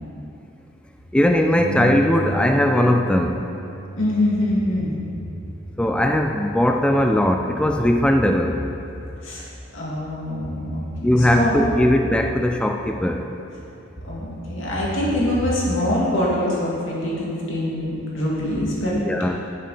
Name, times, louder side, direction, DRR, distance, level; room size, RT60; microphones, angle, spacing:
voice 1, 1.1-3.4 5.8-8.6 11.0-13.3 18.9-19.4, left 1 dB, 5° left, 4 dB, 0.3 m, -19 dB
Bass guitar, 1.6-7.8, right 2 dB, 40° right, 1.0 m, -34 dB
voice 2, 4.0-4.9 9.2-9.4 9.7-11.5 14.0-18.9, left 1 dB, 80° left, -6 dB, 2.3 m, -24 dB
10.0 x 7.4 x 4.2 m, 2.8 s
head